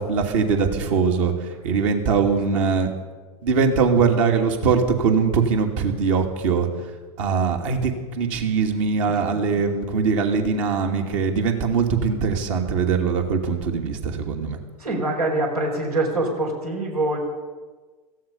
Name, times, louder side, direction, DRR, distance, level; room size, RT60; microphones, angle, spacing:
voice 1, 0.0-1.3 1.6-2.9 3.4-6.7 7.2-7.9 8.2-14.6, right 5 dB, 60° right, 3 dB, 2.8 m, -21 dB
voice 2, 2.3-2.7 9.1-9.7 14.8-17.2, right 2 dB, 85° right, 1 dB, 5.0 m, -25 dB
17.5 x 15.0 x 5.6 m, 1.4 s
hypercardioid pair, 95°, 19 cm